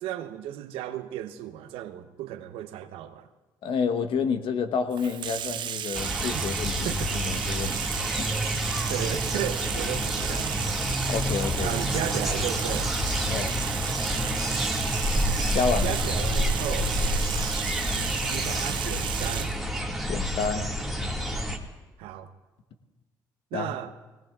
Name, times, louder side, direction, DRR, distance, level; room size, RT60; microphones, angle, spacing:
voice 1, 0.0-3.3 6.3-6.5 6.8-7.2 8.9-10.6 11.6-12.9 15.8-17.0 18.3-19.6 22.0-22.3 23.5-23.9, right 11 dB, 75° right, 0.8 m, -34 dB
voice 2, 3.6-6.7 7.1-7.8 8.2-8.3 11.1-11.7 13.3-13.5 15.5-15.9 20.1-20.7 23.5-23.7, left 5 dB, 65° left, 1.1 m, -29 dB
Bathtub (filling or washing), 4.9-19.6, right 11 dB, 55° right, 0.4 m, -33 dB
sound 1, 5.9-21.6, equal, ahead, 2.0 m, -28 dB
21.0 x 18.5 x 2.4 m
hypercardioid pair, 60°, 10 cm